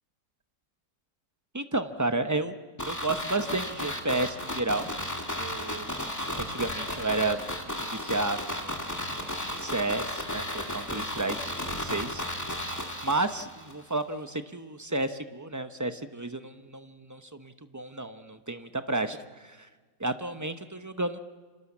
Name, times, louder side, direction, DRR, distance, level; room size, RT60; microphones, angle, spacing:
voice 1, 1.5-2.5 2.9-4.9 5.4-5.9 6.4-7.5 7.9-8.8 9.2-11.4 11.7-12.2 13.0-19.7 20.0-21.2, right 2 dB, 25° right, 9 dB, 0.3 m, -31 dB
sound 1, 2.8-13.7 14.0-14.1, left 1 dB, 10° left, 2.0 m, -34 dB
29.5 x 26.5 x 7.3 m, 1.5 s
omnidirectional pair, 2.0 m